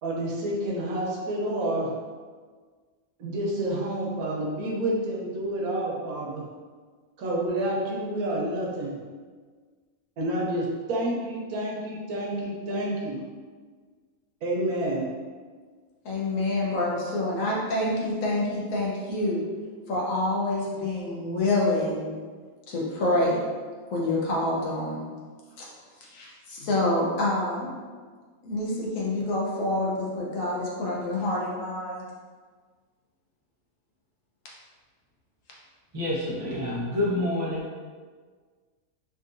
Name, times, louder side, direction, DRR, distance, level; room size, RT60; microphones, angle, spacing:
voice 1, 0.0-1.9 3.2-6.4 7.2-9.0 10.2-13.2 14.4-15.1, right 1 dB, 80° right, -3 dB, 1.2 m, -29 dB
voice 2, 16.0-19.4 19.9-22.1 22.7-23.4 23.9-25.0 25.6-27.7 28.4-32.0, left 2 dB, 65° left, -4 dB, 1.1 m, -27 dB
voice 3, 35.9-37.6, left 1 dB, 60° right, -5 dB, 0.3 m, -27 dB
3.7 x 2.5 x 2.5 m, 1.5 s
omnidirectional pair, 1.6 m